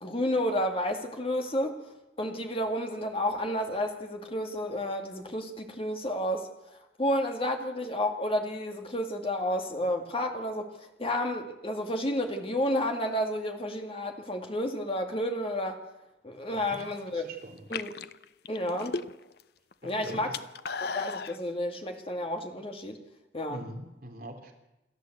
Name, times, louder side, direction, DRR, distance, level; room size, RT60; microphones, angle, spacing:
voice 1, 0.0-1.8 2.2-6.5 7.0-15.8 16.2-17.2 17.7-17.9 18.5-19.0 19.8-20.3 20.8-23.0 23.3-23.6, left 1 dB, 30° left, 4 dB, 2.3 m, -31 dB
sound 1, 16.5-17.0 17.6-19.4 19.7-21.4, left 5 dB, 55° left, 0.6 m, -36 dB
voice 2, 16.5-16.8 17.1-17.7 19.8-20.4 23.5-24.5, right 1 dB, 50° right, 2 dB, 3.4 m, -43 dB
28.0 x 12.0 x 8.0 m, 0.94 s
head